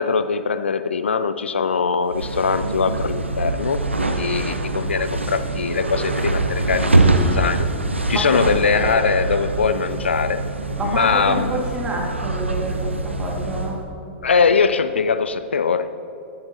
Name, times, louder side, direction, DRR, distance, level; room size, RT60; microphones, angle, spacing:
voice 1, 0.0-7.7 8.1-10.4 10.8-11.6 14.2-15.9, left 5 dB, 75° left, 13 dB, 0.4 m, -21 dB
sound 1, 2.0-13.8, right 2 dB, 90° right, 0.7 m, -23 dB
voice 2, 8.1-8.4 10.8-13.8, right 1 dB, 15° right, -2 dB, 2.1 m, -28 dB
12.0 x 10.5 x 2.9 m, 2.8 s
figure-of-eight pair, 105°, 6 cm